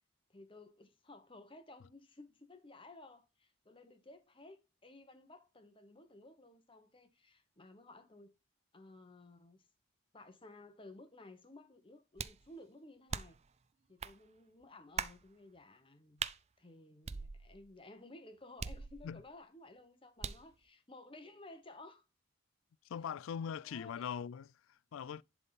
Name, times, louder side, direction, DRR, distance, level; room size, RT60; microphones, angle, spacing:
voice 1, 0.3-8.3 8.7-9.6 10.1-13.4 13.9-16.3 16.6-22.0 23.5-24.1, left 2 dB, 25° left, 1.1 m, -56 dB
sound 1, 12.2-12.5 13.1-13.5 14.0-14.2 15.0-15.2 16.2-16.4 17.1-17.7 18.6-19.3 20.2-20.5, right 6 dB, 30° right, 0.4 m, -41 dB
voice 2, 22.9-25.2, left 7 dB, 70° left, 0.3 m, -41 dB
11.0 x 3.7 x 4.0 m
head